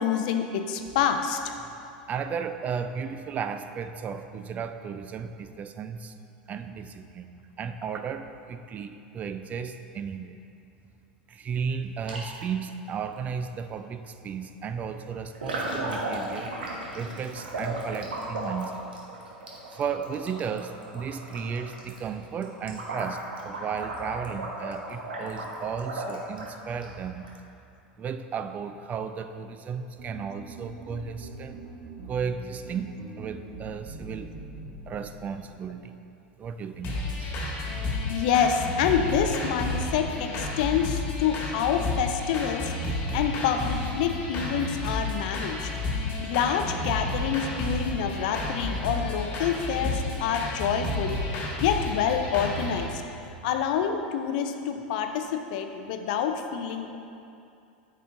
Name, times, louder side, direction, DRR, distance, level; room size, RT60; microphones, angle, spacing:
voice 1, 0.0-1.6 38.1-42.7 43.1-45.7 46.2-51.2 51.6-53.0 53.4-57.0, left 7 dB, 60° left, 6 dB, 0.5 m, -27 dB
voice 2, 2.1-6.2 6.5-7.3 7.6-10.4 11.3-16.5 16.9-18.9 19.7-27.3 28.0-31.6 32.1-34.3 34.9-36.0 36.4-37.4, right 6 dB, 30° right, 8 dB, 0.3 m, -34 dB
sound 1, 12.1-12.5 13.6-13.7 15.3-27.3, right 1 dB, 80° right, 1.0 m, -35 dB
sound 2, 30.0-35.3, right 2 dB, 45° right, 1.1 m, -43 dB
sound 3, 36.8-52.8, left 2 dB, 40° left, 1.4 m, -31 dB
8.5 x 5.5 x 2.6 m, 2.6 s
hypercardioid pair, 90°, 5 cm